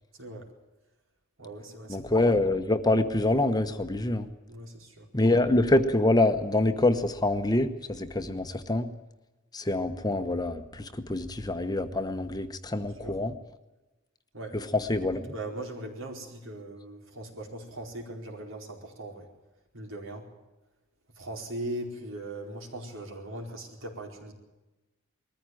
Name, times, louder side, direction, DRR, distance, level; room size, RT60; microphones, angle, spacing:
voice 1, 1.4-2.1 4.5-5.1 12.7-13.1 14.3-14.6 15.3-19.3 19.7-20.3 21.2-24.3, right 1 dB, 75° right, 1 dB, 4.6 m, -39 dB
voice 2, 1.9-4.3 5.1-8.9 9.5-13.3 14.5-15.3, left 2 dB, 20° left, 8 dB, 1.1 m, -26 dB
21.0 x 14.5 x 9.2 m, 1.1 s
head